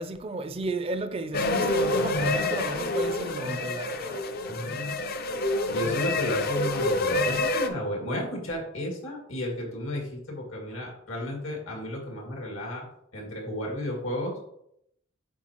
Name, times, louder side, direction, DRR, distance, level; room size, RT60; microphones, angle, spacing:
voice 1, 0.0-4.2, right 2 dB, 30° right, 0.4 m, -33 dB
sound 1, 1.3-7.7, left 2 dB, 50° left, 0.5 m, -27 dB
voice 2, 4.5-5.0 5.7-12.8 13.1-14.4, left 1 dB, 85° left, 2.1 m, -33 dB
8.3 x 4.5 x 3.0 m
head